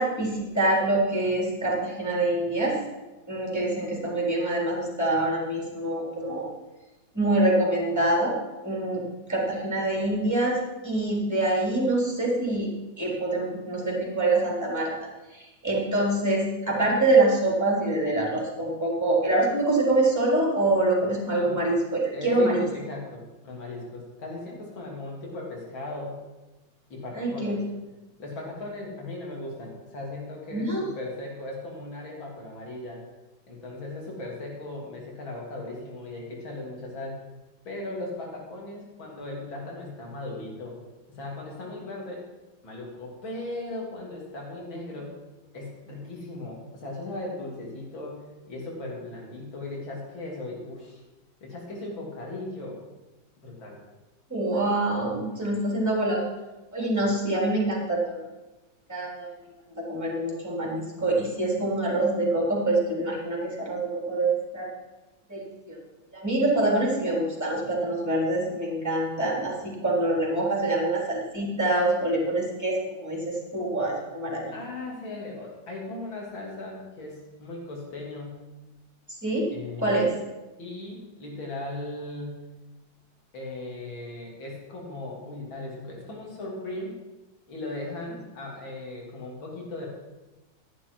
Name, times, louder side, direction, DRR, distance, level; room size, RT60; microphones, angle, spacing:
voice 1, 0.0-2.7 3.3-6.5 7.1-8.3 8.6-10.6 10.8-12.7 13.0-14.9 15.3-22.6 27.2-27.6 30.5-30.8 54.3-56.3 56.7-58.2 58.9-59.3 59.8-64.7 65.3-65.8 66.1-74.5 79.2-79.4 79.8-80.1, right 2 dB, 10° right, -3 dB, 3.8 m, -25 dB
voice 2, 21.3-21.6 22.1-26.1 26.9-27.6 28.2-33.0 33.5-37.3 37.7-40.8 41.1-42.3 42.6-45.1 45.5-51.0 51.4-52.8 53.4-53.8 55.3-55.5 66.6-66.8 74.5-78.4 79.5-80.0 80.6-82.4 83.3-87.0 87.5-89.9, left 2 dB, 85° left, -2 dB, 3.7 m, -37 dB
13.5 x 10.5 x 4.7 m, 1.1 s
omnidirectional pair, 2.1 m